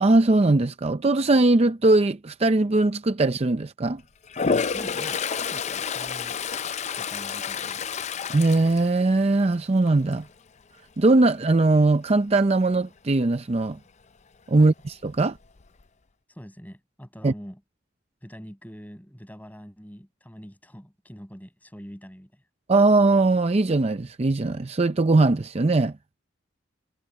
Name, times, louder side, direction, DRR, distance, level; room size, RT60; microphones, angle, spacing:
voice 1, 0.0-4.0 8.3-10.3 11.0-13.8 14.5-15.4 17.2-17.3 22.7-25.9, right 2 dB, 35° right, 0.5 m, -20 dB
Toilet flush, 4.3-9.5 9.9-10.2 14.7-14.8 15.1-15.8, left 5 dB, 35° left, 0.5 m, -29 dB
voice 2, 4.7-6.4 6.9-7.9 14.5-14.7 16.3-17.6 18.2-22.4, equal, 10° left, 7.8 m, -44 dB
head